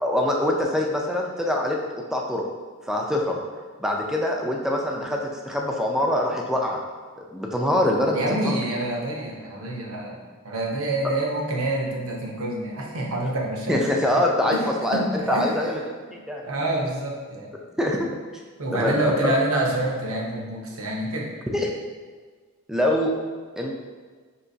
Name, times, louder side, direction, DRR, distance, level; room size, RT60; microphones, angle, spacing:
voice 1, 0.0-1.8 2.1-2.4 2.9-3.4 3.8-5.2 5.5-6.8 7.2-8.6 11.0-11.1 13.7-15.0 15.3-15.8 16.3-16.4 17.8-18.1 18.7-19.3 21.5-21.7 22.7-23.1 23.6-23.7, left 1 dB, ahead, 0 dB, 0.4 m, -24 dB
voice 2, 8.1-10.2 10.4-14.2 14.5-14.6 14.9-15.5 16.4-17.5 18.6-21.3, right 1 dB, 75° right, -1 dB, 0.8 m, -27 dB
5.6 x 2.9 x 2.6 m, 1.5 s
head